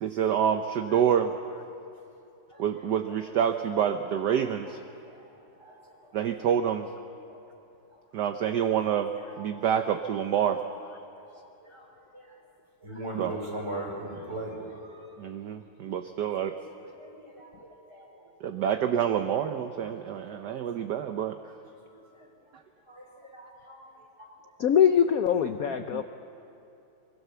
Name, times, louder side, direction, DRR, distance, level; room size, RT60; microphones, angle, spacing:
voice 1, 0.0-1.3 2.6-4.8 6.1-6.9 8.1-9.1 9.4-10.6 13.1-13.3 15.2-16.6 18.4-21.3 25.9-26.0, right 9 dB, 65° right, 7 dB, 1.2 m, -27 dB
voice 2, 11.1-11.9 12.1-12.3 12.8-15.0 17.0-17.5 17.9-18.1 22.1-22.3 22.9-23.0 23.3-23.8 24.2-24.3, right 1 dB, 10° right, -3 dB, 5.3 m, -39 dB
voice 3, 24.6-26.0, left 8 dB, 70° left, 8 dB, 0.8 m, -22 dB
24.0 x 23.5 x 6.9 m, 2.8 s
omnidirectional pair, 2.4 m